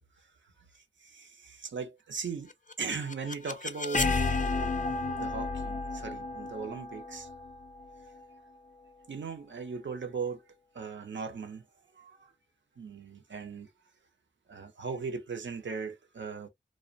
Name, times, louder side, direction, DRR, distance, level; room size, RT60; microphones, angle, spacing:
voice 1, 1.0-2.5 2.8-4.1 4.6-4.8 5.2-7.3 9.1-10.4 10.7-11.6 12.0-12.1 12.8-13.7 14.5-16.5, right 5 dB, 75° right, 0.6 m, -38 dB
sound 1, 2.5-8.4, left 3 dB, 40° left, 0.4 m, -32 dB
2.4 x 2.1 x 2.5 m
cardioid pair, 45°, 19 cm